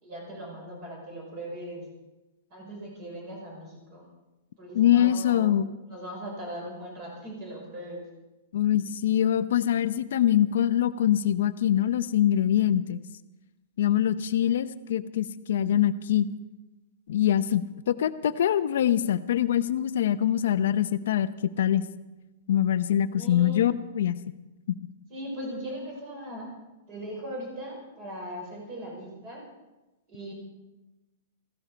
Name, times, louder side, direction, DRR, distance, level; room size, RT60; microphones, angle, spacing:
voice 1, 0.0-1.8 2.5-4.1 4.5-5.5 5.9-8.0 14.3-14.5 23.2-23.7 25.1-26.5 26.9-29.4 30.1-30.3, right 1 dB, 30° right, 0 dB, 5.7 m, -39 dB
voice 2, 4.7-5.7 8.5-13.0 13.8-16.3 17.1-21.9 22.5-24.2 24.7-24.8, left 11 dB, 65° left, 11 dB, 0.7 m, -24 dB
17.0 x 15.0 x 5.1 m, 1.0 s
supercardioid pair, 170°, 0 cm